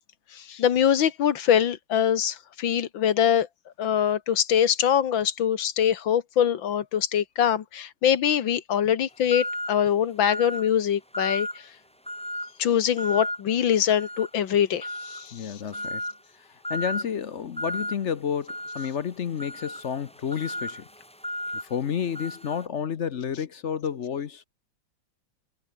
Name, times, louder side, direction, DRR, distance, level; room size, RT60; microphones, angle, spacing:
voice 1, 0.4-3.5 3.8-11.5 12.6-15.3, left 9 dB, 90° left, 2.1 m, -23 dB
sound 1, 9.3-9.8 10.2-10.7 11.1-11.6 12.1-12.5 13.0-13.4 13.9-14.3 14.8-15.3 15.7-16.2 16.6-17.1 17.6-18.0 18.5-22.6, equal, 5° left, 3.3 m, -34 dB
voice 2, 15.3-16.0 16.7-20.8 21.7-24.5, left 7 dB, 50° left, 0.9 m, -30 dB
omnidirectional pair, 2.0 m